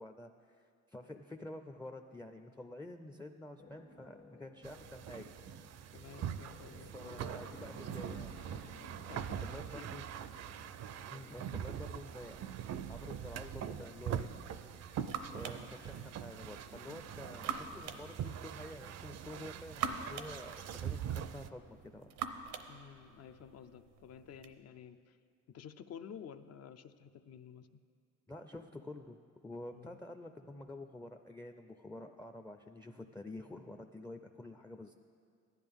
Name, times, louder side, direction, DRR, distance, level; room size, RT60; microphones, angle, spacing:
voice 1, 0.0-5.3 6.7-8.4 9.4-10.0 11.1-12.4 12.9-14.3 15.3-22.1 28.3-34.9, left 1 dB, 10° left, 6 dB, 0.4 m, -49 dB
sound 1, 3.6-18.1, left 4 dB, 70° left, 1.5 m, -59 dB
sound 2, 4.6-21.5, right 9 dB, 60° right, 0.5 m, -43 dB
voice 2, 5.9-7.2 9.1-9.9 22.7-25.2 25.5-27.8 29.7-30.0, left 8 dB, 55° left, 11 dB, 0.5 m, -52 dB
sound 3, 14.4-24.5, right 7 dB, 90° right, 0.8 m, -45 dB
15.0 x 10.5 x 3.5 m, 2.3 s
cardioid pair, 90°, 30 cm